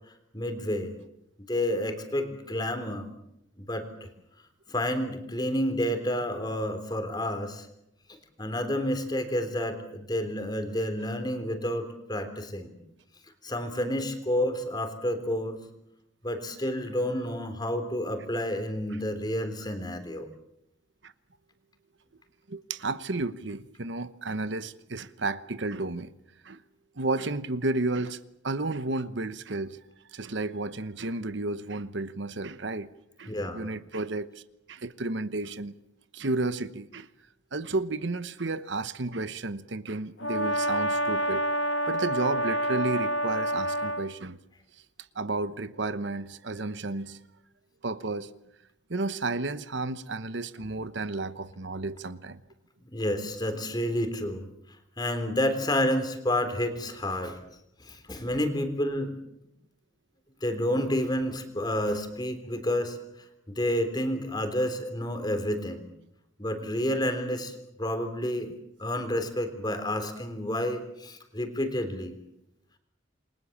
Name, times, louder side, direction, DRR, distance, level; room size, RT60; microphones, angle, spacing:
voice 1, 0.3-0.9 1.5-3.1 3.6-4.1 4.7-7.7 8.4-12.7 13.4-15.6 16.2-20.3 33.3-33.7 52.8-54.5 55.0-57.4 57.8-59.2 60.4-63.0 63.5-65.9 66.4-68.5 68.8-72.1, left 1 dB, 20° left, 3.5 m, -30 dB
voice 2, 22.5-26.1 26.4-26.6 27.0-28.2 28.4-29.8 30.1-32.9 33.2-34.4 34.7-35.7 36.1-37.1 37.5-44.4 44.7-44.8 45.1-47.2 47.8-48.3 48.9-52.4, right 2 dB, 65° right, 1.0 m, -32 dB
Brass instrument, 40.2-44.1, equal, 70° left, 2.3 m, -28 dB
28.5 x 22.5 x 7.3 m
head